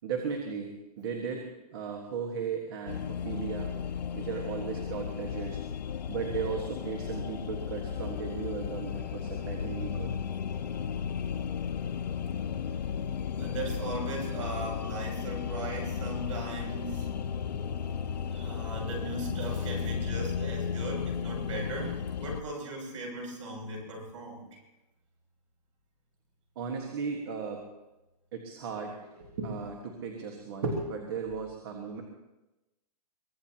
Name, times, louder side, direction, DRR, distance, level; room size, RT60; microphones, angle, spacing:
voice 1, 0.0-3.7 4.1-5.6 6.1-10.1 26.5-27.7 28.3-32.0, right 5 dB, 35° right, 2 dB, 1.6 m, -36 dB
sound 1, 2.9-22.4, left 7 dB, 90° left, 0.8 m, -34 dB
voice 2, 13.4-17.1 18.3-24.4, right 2 dB, 50° right, 0 dB, 7.0 m, -38 dB
23.5 x 18.5 x 3.0 m, 1.0 s
hypercardioid pair, 175°, 21 cm